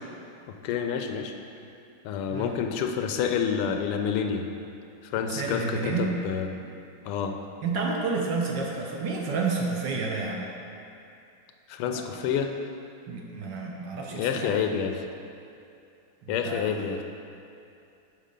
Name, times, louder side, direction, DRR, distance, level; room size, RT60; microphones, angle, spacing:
voice 1, 0.5-1.3 2.0-4.4 5.0-6.5 7.0-7.3 11.7-12.5 14.1-15.0 16.3-17.0, left 7 dB, 85° left, 5 dB, 1.5 m, -28 dB
voice 2, 5.2-6.1 7.6-10.5 11.9-12.0 13.1-14.6 16.3-16.8, right 4 dB, 70° right, -1 dB, 1.2 m, -30 dB
6.5 x 5.8 x 5.1 m, 2.6 s
omnidirectional pair, 2.4 m